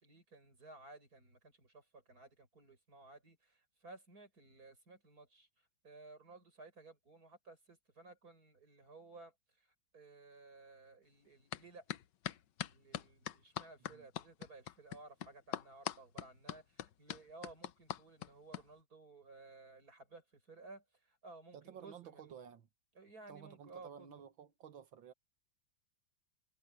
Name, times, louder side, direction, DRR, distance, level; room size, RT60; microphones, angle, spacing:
voice 1, 0.0-11.8 12.6-22.3 22.9-24.1, right 3 dB, 50° right, 6.5 m, -57 dB
sound 1, 11.5-11.6 11.9-18.6, left 11 dB, 70° left, 1.4 m, -42 dB
voice 2, 21.5-22.7 23.3-25.1, right 8 dB, 85° right, 2.2 m, -53 dB
omnidirectional pair, 2.1 m